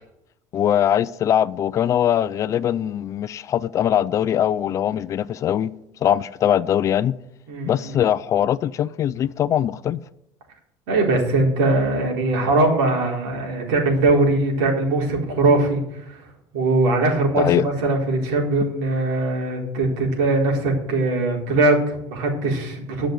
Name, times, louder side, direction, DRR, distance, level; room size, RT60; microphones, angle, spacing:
voice 1, 0.5-5.7 6.0-7.1 7.6-10.0 17.4-17.7, left 10 dB, 35° left, 0.4 m, -21 dB
voice 2, 7.5-8.0 10.9-16.2 16.5-23.1, right 2 dB, 85° right, 4.0 m, -21 dB
12.0 x 6.2 x 7.9 m
cardioid pair, 150°, 9 cm